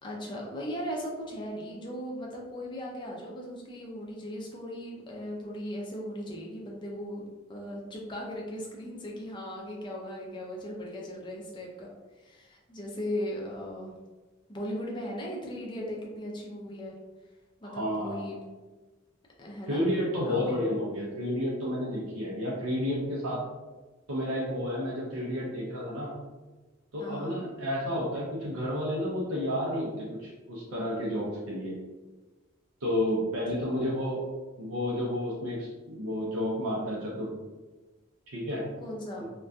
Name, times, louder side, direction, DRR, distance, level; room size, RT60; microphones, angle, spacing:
voice 1, 0.0-11.9 12.2-13.9 14.5-17.0 17.6-18.4 19.4-19.9 20.2-20.6 27.0-27.4 33.6-33.7 38.8-39.3, equal, 20° left, -2 dB, 0.4 m, -38 dB
voice 2, 17.6-18.3 19.7-23.4 24.1-26.1 26.9-31.8 32.8-34.2 34.6-37.3 38.3-38.7 39.2-39.3, left 1 dB, 85° right, -5 dB, 0.5 m, -31 dB
2.5 x 2.2 x 2.2 m, 1.2 s
head